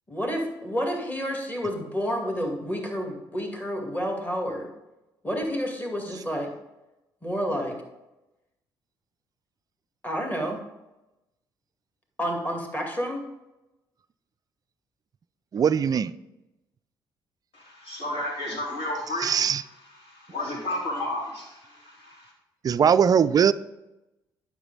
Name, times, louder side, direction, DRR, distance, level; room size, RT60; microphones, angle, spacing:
voice 1, 0.1-4.7 5.2-6.5 7.2-7.8 10.0-10.6 12.2-13.2, equal, 15° left, 1 dB, 2.2 m, -29 dB
voice 2, 15.5-16.1 19.2-19.6 22.6-23.5, right 7 dB, 35° right, 15 dB, 0.4 m, -20 dB
voice 3, 17.5-19.3 20.0-22.3, left 1 dB, 55° left, -4 dB, 3.7 m, -32 dB
11.0 x 6.2 x 4.0 m, 0.97 s
figure-of-eight pair, 45°, 11 cm